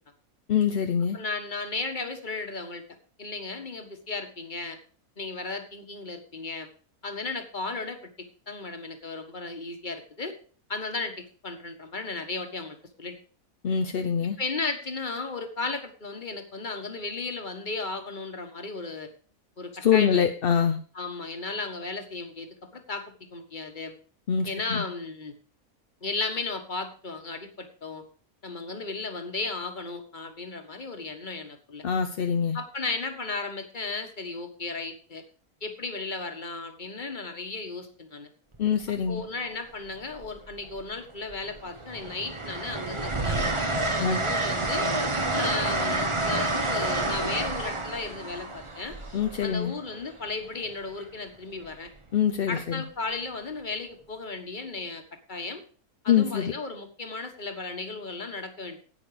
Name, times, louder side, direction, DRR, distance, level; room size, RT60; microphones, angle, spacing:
voice 1, 0.5-1.2 13.6-14.4 19.8-20.8 24.3-24.8 31.8-32.6 38.6-39.2 44.0-44.2 49.1-49.7 52.1-52.8 56.1-56.5, left 8 dB, 50° left, 5 dB, 0.8 m, -24 dB
voice 2, 1.1-2.8 3.2-4.8 5.2-6.7 7.0-10.3 10.7-13.2 14.4-19.1 19.6-20.2 20.9-23.9 24.5-25.3 26.0-28.0 28.4-31.8 32.5-35.2 35.6-38.3 39.1-43.5 44.0-44.9 45.3-49.0 49.4-51.9 52.5-55.0 55.3-55.6 56.0-58.8, left 3 dB, 35° left, 6 dB, 1.7 m, -35 dB
Train, 38.5-38.8 40.1-40.9 41.3-50.0 51.6-51.9, right 2 dB, 25° right, 1.1 m, -29 dB
11.0 x 9.1 x 5.0 m, 0.42 s
omnidirectional pair, 1.5 m